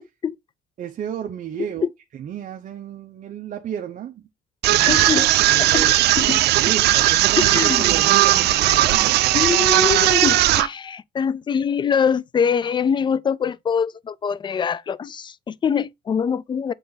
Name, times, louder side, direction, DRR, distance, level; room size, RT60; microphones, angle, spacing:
voice 1, 0.8-1.9 2.2-4.3 4.7-6.0 6.3-9.2, right 9 dB, 50° right, 0.9 m, -32 dB
sound 1, 4.6-10.7, right 15 dB, 75° right, 0.6 m, -17 dB
voice 2, 4.9-5.3 5.7-6.4 7.4-7.8 9.3-16.7, left 7 dB, 30° left, 0.4 m, -23 dB
7.8 x 3.8 x 3.9 m
cardioid pair, 110°, 17 cm